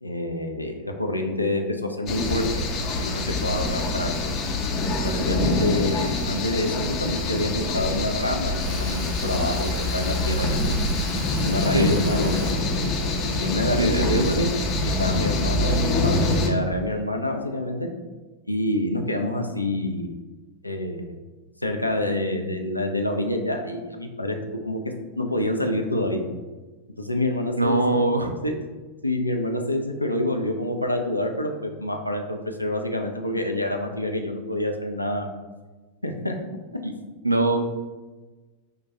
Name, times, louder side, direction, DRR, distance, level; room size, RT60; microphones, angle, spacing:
voice 1, 0.0-2.5 3.0-4.1 5.0-10.7 11.4-12.6 13.3-14.5 14.8-17.9 18.5-20.1 20.6-21.2 21.6-24.4 24.6-24.8 25.2-26.2 27.0-27.8 28.4-28.5 29.0-35.3 36.0-36.3, left 1 dB, 85° left, 3 dB, 0.3 m, -27 dB
sound 1, 2.1-16.5, left 2 dB, 35° left, 0.5 m, -25 dB
Tools, 8.5-12.6, right 3 dB, 40° right, 0.7 m, -40 dB
voice 2, 13.8-14.3 27.6-28.3 36.8-36.9 37.2-37.6, right 2 dB, 85° right, 6 dB, 0.3 m, -22 dB
5.0 x 2.2 x 2.7 m, 1.3 s
figure-of-eight pair, 90°, 0 cm